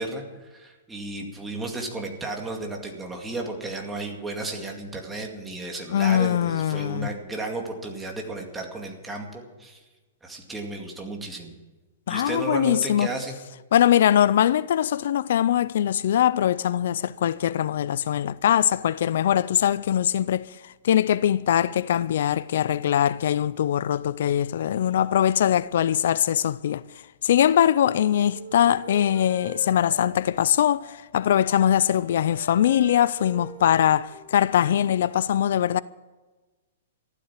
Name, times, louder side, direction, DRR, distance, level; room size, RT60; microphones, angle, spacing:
voice 1, 0.0-9.8 10.2-11.5 12.1-13.4, right 2 dB, 5° right, 2.2 m, -33 dB
voice 2, 5.9-7.1 12.1-13.1 13.7-26.8 27.2-35.8, left 10 dB, 65° left, 0.4 m, -22 dB
Wind instrument woodwind instrument, 27.8-30.9 31.3-34.9, right 2 dB, 30° right, 7.2 m, -45 dB
15.0 x 12.0 x 7.4 m
hypercardioid pair, 160°, 0 cm